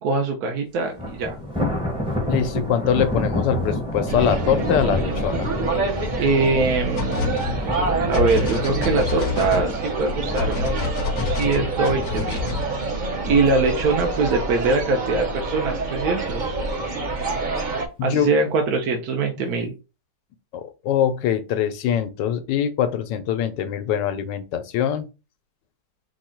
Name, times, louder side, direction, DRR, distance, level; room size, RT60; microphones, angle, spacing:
voice 1, 0.0-1.4 6.2-7.4 7.7-7.8 8.1-12.4 13.2-16.6 18.0-19.7, right 3 dB, 65° right, 1.2 m, -23 dB
Thunder, 0.9-14.2 14.6-14.9 15.3-15.4 16.3-16.9, left 1 dB, 5° right, 0.7 m, -29 dB
voice 2, 2.3-5.5 18.0-18.3 19.4-19.5 20.5-25.1, left 9 dB, 85° left, 1.4 m, -23 dB
sound 1, 4.1-17.9, right 3 dB, 40° right, 0.7 m, -27 dB
sound 2, 4.2-4.3 4.7-4.8 6.5-12.6, left 6 dB, 60° left, 1.0 m, -29 dB
5.0 x 2.4 x 4.3 m
omnidirectional pair, 1.9 m